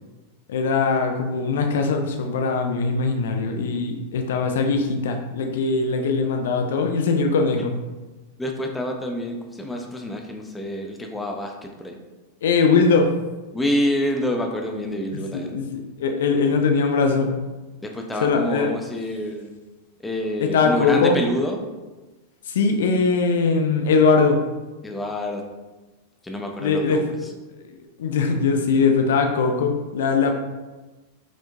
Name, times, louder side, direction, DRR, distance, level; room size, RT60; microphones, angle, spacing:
voice 1, 0.5-7.7 12.4-13.1 15.1-17.4 18.2-18.8 20.4-21.2 22.4-24.4 26.6-27.3 27.6-27.7 28.0-30.3, left 4 dB, 60° left, 4 dB, 0.4 m, -21 dB
voice 2, 8.4-12.0 13.5-15.6 17.8-19.5 20.0-21.6 24.8-25.4 26.2-27.1, equal, 10° left, 2 dB, 0.6 m, -27 dB
4.9 x 3.6 x 2.6 m, 1.2 s
figure-of-eight pair, 90°, 0 cm